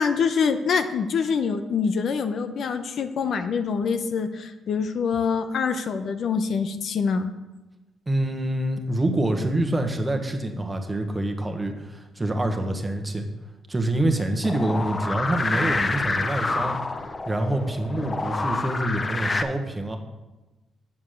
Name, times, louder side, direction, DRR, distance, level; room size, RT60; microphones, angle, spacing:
voice 1, 0.0-7.3, left 5 dB, 60° left, 8 dB, 0.7 m, -25 dB
voice 2, 8.1-13.2 13.7-16.8 17.2-20.0, right 1 dB, 15° right, 4 dB, 1.4 m, -26 dB
sound 1, 14.4-19.4, left 3 dB, 25° left, 0.7 m, -28 dB
7.3 x 7.1 x 6.5 m, 1.1 s
cardioid pair, 90°, 0 cm